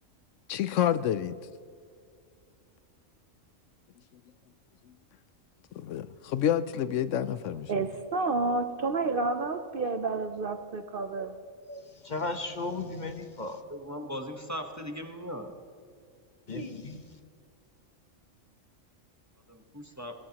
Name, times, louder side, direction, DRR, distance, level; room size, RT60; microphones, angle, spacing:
voice 1, 0.5-1.4 5.7-7.7, left 10 dB, 75° left, 0.9 m, -28 dB
voice 2, 7.7-11.3, right 3 dB, 50° right, 0.7 m, -30 dB
voice 3, 11.7-13.6 16.5-17.0, left 2 dB, 40° left, 0.9 m, -35 dB
voice 4, 13.7-15.5 19.5-20.1, equal, 15° right, 1.0 m, -38 dB
21.5 x 17.0 x 2.9 m
omnidirectional pair, 1.3 m